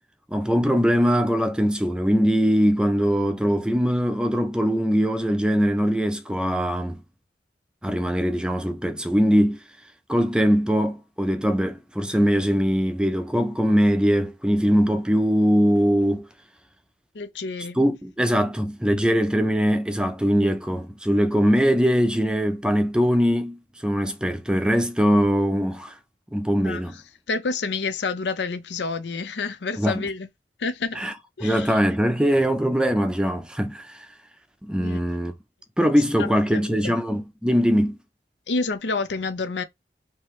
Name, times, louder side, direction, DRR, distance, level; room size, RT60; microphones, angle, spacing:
voice 1, 0.3-7.0 7.8-9.6 10.1-16.3 17.7-26.0 26.3-27.0 29.8-30.1 31.0-31.1 31.4-34.1 34.6-35.3 35.8-38.0, equal, 5° right, 0.5 m, -21 dB
voice 2, 17.1-17.8 26.6-26.8 27.3-30.3 30.6-31.0 31.4-31.8 34.8-35.0 36.5-37.0 38.5-39.6, left 4 dB, 85° left, 0.6 m, -28 dB
4.7 x 2.9 x 3.1 m
head